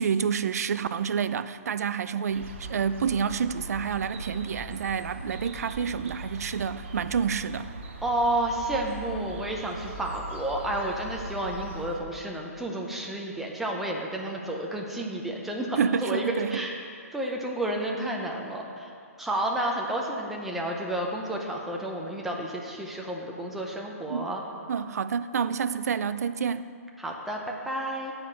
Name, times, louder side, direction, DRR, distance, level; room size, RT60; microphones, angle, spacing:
voice 1, 0.0-7.7 15.8-16.6 24.1-24.3 24.7-26.7, right 7 dB, 75° right, 0.3 m, -28 dB
sound 1, 2.3-12.0, right 1 dB, 45° right, 0.9 m, -41 dB
voice 2, 8.0-16.8 17.1-18.9 19.2-24.4 27.0-27.4 27.6-28.1, right 1 dB, ahead, 0.6 m, -31 dB
8.9 x 5.0 x 7.0 m
hypercardioid pair, 165°, 8 cm